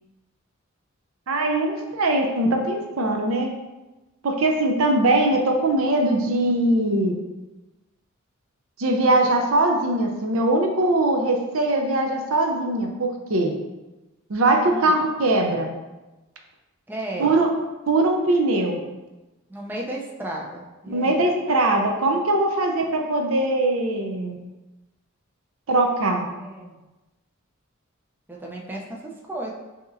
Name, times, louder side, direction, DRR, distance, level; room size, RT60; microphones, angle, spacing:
voice 1, 1.3-3.5 4.2-7.1 8.8-13.5 14.3-15.7 17.2-17.5 17.9-18.8 20.9-24.4 25.7-26.3, right 2 dB, 75° right, 3 dB, 0.6 m, -21 dB
voice 2, 14.7-15.0 16.9-17.4 19.5-21.2 26.4-26.9 28.3-29.5, right 1 dB, 10° right, -2 dB, 0.4 m, -34 dB
5.4 x 2.9 x 2.5 m, 1.1 s
head